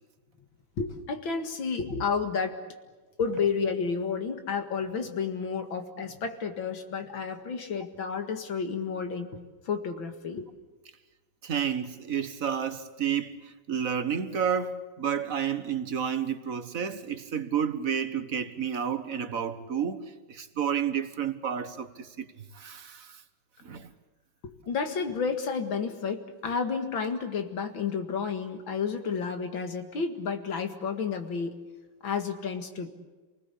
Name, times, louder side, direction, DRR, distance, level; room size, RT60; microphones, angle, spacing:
voice 1, 0.8-2.6 3.2-9.4 9.7-10.5 24.4-31.6 32.0-32.9, left 5 dB, 75° left, 2.7 m, -31 dB
voice 2, 11.4-22.3 22.5-23.2 23.6-23.9, right 8 dB, 45° right, 1.6 m, -31 dB
28.0 x 19.5 x 8.4 m
omnidirectional pair, 2.1 m